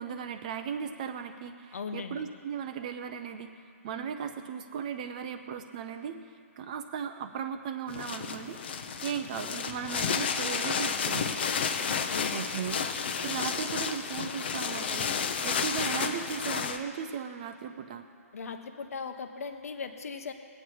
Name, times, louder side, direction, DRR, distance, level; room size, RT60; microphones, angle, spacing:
voice 1, 0.0-3.5 3.8-6.2 6.6-11.3 12.3-12.8 13.2-18.1, right 7 dB, 30° right, 7 dB, 0.6 m, -37 dB
voice 2, 1.7-2.3 12.1-12.6 18.3-20.3, left 5 dB, 65° left, 6 dB, 1.1 m, -38 dB
sound 1, 7.9-16.8, left 6 dB, 40° left, 0.8 m, -31 dB
22.0 x 8.6 x 4.6 m, 2.2 s
hypercardioid pair, 165°, 9 cm